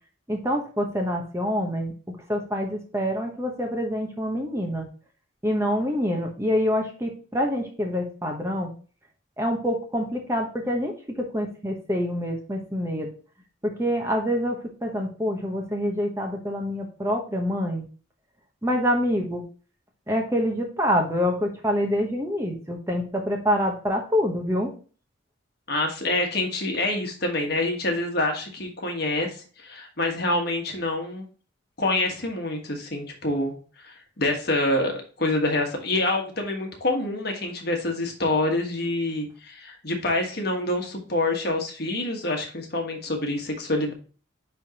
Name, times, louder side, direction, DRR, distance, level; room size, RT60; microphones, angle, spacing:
voice 1, 0.3-1.9 2.3-4.9 5.4-8.7 9.4-13.1 13.6-17.9 18.6-19.4 20.1-24.7, equal, 15° right, 2 dB, 1.0 m, -26 dB
voice 2, 25.7-31.2 31.8-33.5 33.8-43.9, left 2 dB, 50° left, 3 dB, 1.4 m, -26 dB
10.0 x 3.5 x 2.9 m, 0.38 s
head